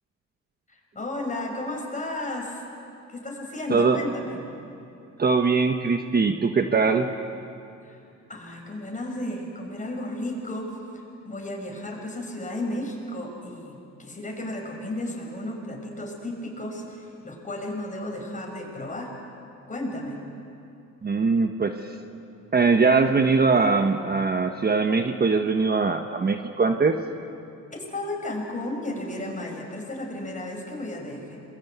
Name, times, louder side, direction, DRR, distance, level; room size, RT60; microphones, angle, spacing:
voice 1, 0.7-2.6 3.1-4.4 7.8-8.0 8.3-19.1 19.7-20.2 27.7-31.4, left 1 dB, 25° left, 1 dB, 6.4 m, -33 dB
voice 2, 5.2-7.1 21.0-21.9 22.5-27.0, right 4 dB, 30° right, 6 dB, 1.2 m, -21 dB
27.5 x 21.5 x 8.3 m, 2.6 s
cardioid pair, 90°, 30 cm